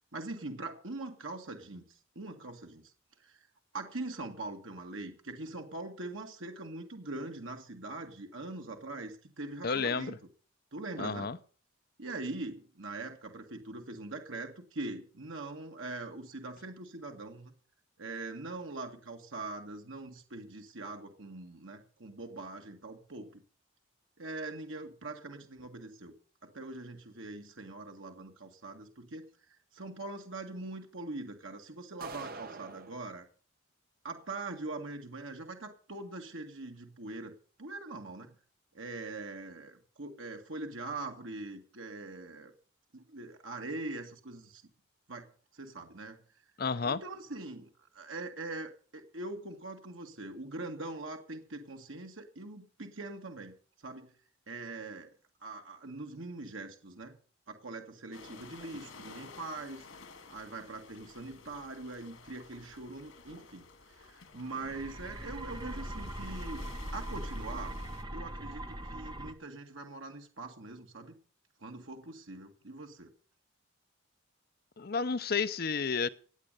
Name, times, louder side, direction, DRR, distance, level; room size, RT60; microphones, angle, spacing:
voice 1, 0.1-1.8 2.2-2.8 3.2-3.5 3.7-10.2 10.7-11.3 12.0-17.5 18.0-23.4 24.2-26.1 26.4-29.2 29.5-33.3 34.0-38.4 38.7-42.5 42.9-44.6 45.1-45.3 45.5-46.2 46.8-47.7 47.9-53.5 53.8-54.1 54.5-55.1 55.4-57.2 57.5-59.9 60.3-66.6 66.9-67.7 68.1-71.1 71.6-73.1, right 2 dB, 75° right, 1.9 m, -42 dB
voice 2, 9.6-10.2 11.0-11.4 46.6-47.0 74.8-76.1, left 5 dB, 50° left, 0.6 m, -31 dB
sound 1, 32.0-33.0, right 3 dB, 45° right, 1.1 m, -44 dB
sound 2, 58.1-68.0, left 4 dB, 90° left, 2.5 m, -53 dB
sound 3, 64.4-69.3, right 1 dB, 20° right, 1.3 m, -41 dB
16.5 x 8.8 x 6.7 m
head